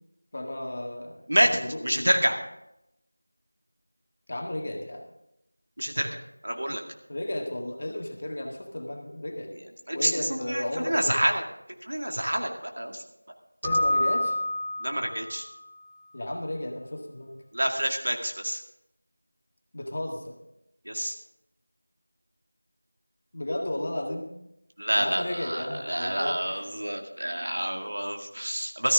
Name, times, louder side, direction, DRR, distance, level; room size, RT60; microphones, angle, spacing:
voice 1, 0.3-2.1 4.3-5.0 6.7-6.8 7.1-9.5 9.9-11.2 13.6-14.4 16.1-17.4 19.7-20.4 23.3-24.3 24.9-26.7, left 1 dB, 35° left, 2 dB, 1.6 m, -34 dB
voice 2, 1.3-2.4 5.8-6.1 6.4-6.8 9.9-11.4 11.9-12.5 12.8-13.0 14.8-15.4 17.5-18.6 20.9-21.1 24.8-28.9, right 1 dB, 70° right, 3 dB, 2.0 m, -27 dB
Keyboard (musical), 13.6-15.4, left 1 dB, 10° right, 2.1 m, -27 dB
14.0 x 13.5 x 3.7 m, 0.84 s
figure-of-eight pair, 175°, 0 cm